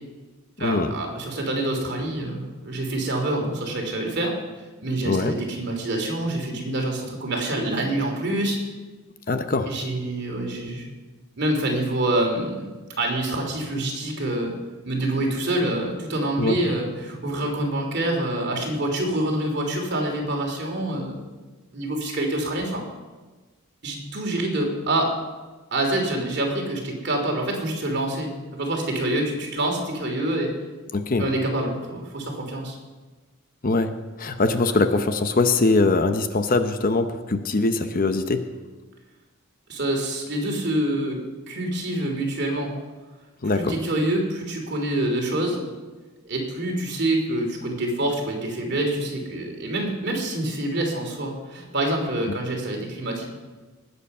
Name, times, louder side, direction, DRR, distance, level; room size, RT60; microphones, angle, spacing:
voice 1, 0.6-4.3 4.8-8.6 9.7-10.9 11.4-12.7 13.0-14.5 14.8-21.2 21.7-22.8 23.8-25.1 25.7-30.5 31.2-32.8 39.7-41.2 41.5-42.7 43.4-45.6 46.2-53.3, right 1 dB, 50° right, 1 dB, 3.1 m, -26 dB
voice 2, 9.3-9.7 16.4-16.6 30.9-31.3 33.6-33.9 34.2-38.4 43.4-43.7, left 3 dB, 40° left, 8 dB, 0.8 m, -22 dB
19.5 x 8.1 x 5.5 m, 1.3 s
head